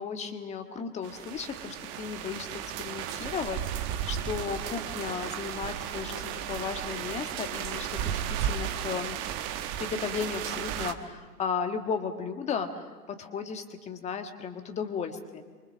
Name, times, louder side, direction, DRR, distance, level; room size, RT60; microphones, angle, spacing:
voice 1, 0.0-9.2 9.8-15.4, left 6 dB, 15° left, 7 dB, 1.5 m, -35 dB
sound 1, 1.0-10.9, right 10 dB, 25° right, 1.1 m, -34 dB
29.0 x 24.5 x 6.4 m, 1.5 s
figure-of-eight pair, 120°, 48 cm